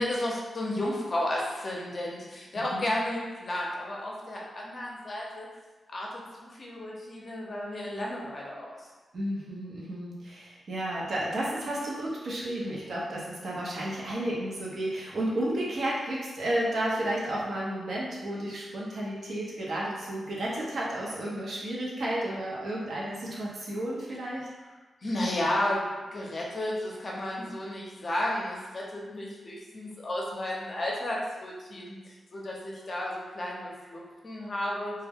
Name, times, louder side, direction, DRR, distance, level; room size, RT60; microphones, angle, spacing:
voice 1, 0.0-5.5 5.9-8.9 25.0-34.9, left 1 dB, 45° left, -3 dB, 0.6 m, -33 dB
voice 2, 2.5-2.9 9.1-24.5, right 1 dB, 65° right, -5 dB, 0.7 m, -32 dB
2.2 x 2.1 x 3.4 m, 1.2 s
cardioid pair, 95°, 0 cm